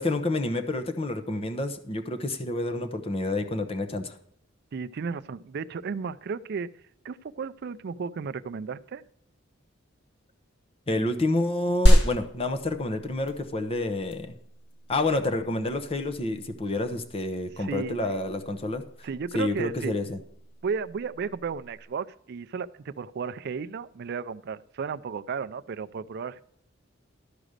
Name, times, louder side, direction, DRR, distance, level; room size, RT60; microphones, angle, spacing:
voice 1, 0.0-4.2 10.9-14.4 14.9-18.8 19.3-20.2, left 2 dB, 30° left, 8 dB, 0.8 m, -29 dB
voice 2, 4.7-6.8 7.0-9.0 17.6-18.0 19.0-20.0 20.6-26.4, right 5 dB, 55° right, 15 dB, 0.4 m, -34 dB
sound 1, 11.9-21.8, equal, 60° left, 1.5 m, -28 dB
12.5 x 5.0 x 6.5 m, 0.70 s
head